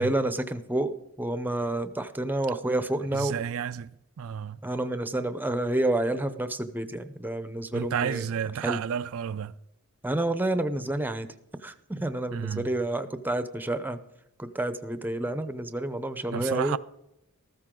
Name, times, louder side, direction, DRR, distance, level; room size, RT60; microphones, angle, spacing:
voice 1, 0.0-3.3 4.6-8.2 8.6-8.8 10.0-11.3 11.6-14.0 14.4-16.8, right 1 dB, 10° right, 0.7 m, -29 dB
voice 2, 3.1-3.9 4.2-4.6 7.7-9.5 12.0-12.7 16.3-16.8, right 8 dB, 65° right, 0.4 m, -31 dB
14.0 x 14.0 x 3.8 m
head